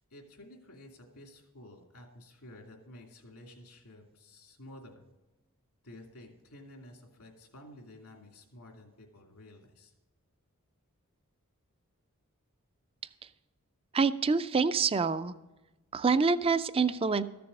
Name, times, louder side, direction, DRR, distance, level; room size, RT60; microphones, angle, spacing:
voice 1, 0.0-5.0 5.8-9.9, left 1 dB, 90° left, 1 dB, 2.6 m, -52 dB
voice 2, 13.9-15.3 15.9-17.2, right 4 dB, 25° right, 14 dB, 0.4 m, -26 dB
14.0 x 6.9 x 6.5 m, 1.1 s
head